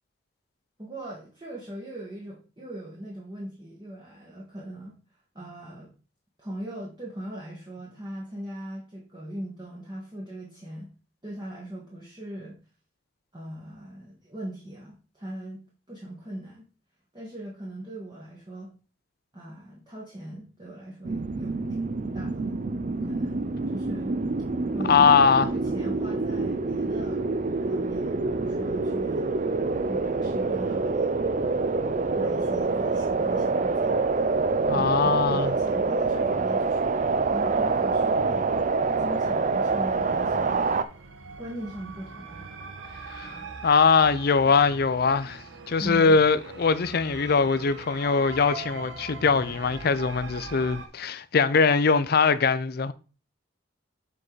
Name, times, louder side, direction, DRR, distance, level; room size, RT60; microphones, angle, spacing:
voice 1, 0.8-4.9 5.3-5.9 6.4-10.9 11.2-12.6 13.3-15.6 15.9-16.6 17.1-18.7 19.3-22.6 23.0-24.1 24.7-27.3 27.7-29.4 29.9-31.3 32.2-34.0 34.7-36.9 37.3-38.7 39.0-40.8 41.4-42.5 43.2-43.5 45.8-46.2, right 1 dB, 25° right, 1.6 m, -39 dB
sound 1, 21.0-40.8, right 3 dB, 40° right, 0.5 m, -26 dB
voice 2, 24.9-25.5 34.7-35.5 43.1-43.4 43.6-52.9, left 5 dB, 55° left, 0.5 m, -22 dB
sound 2, 39.4-50.9, right 3 dB, 85° right, 1.1 m, -42 dB
7.6 x 4.7 x 4.0 m
head